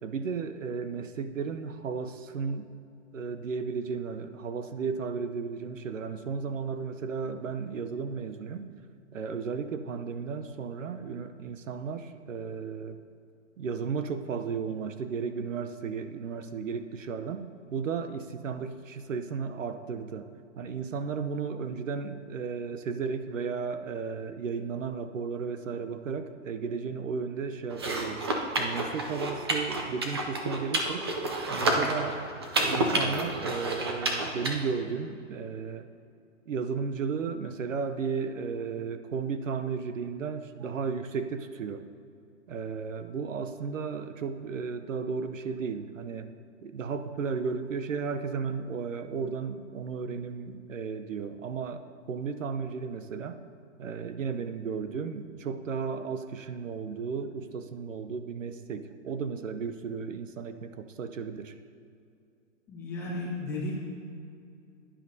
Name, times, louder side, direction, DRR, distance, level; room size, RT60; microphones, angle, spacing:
voice 1, 0.0-2.7 3.1-8.7 9.1-13.0 13.6-20.3 20.6-28.3 28.6-31.1 31.5-32.2 32.6-35.8 36.5-41.8 42.5-46.3 46.6-53.4 53.8-61.5, right 5 dB, 80° right, 10 dB, 0.8 m, -34 dB
sound 1, 27.7-34.5, right 2 dB, 20° right, 0.5 m, -30 dB
voice 2, 62.7-63.7, left 2 dB, 5° left, -6 dB, 1.4 m, -34 dB
16.5 x 10.0 x 2.7 m, 2.5 s
hypercardioid pair, 165°, 38 cm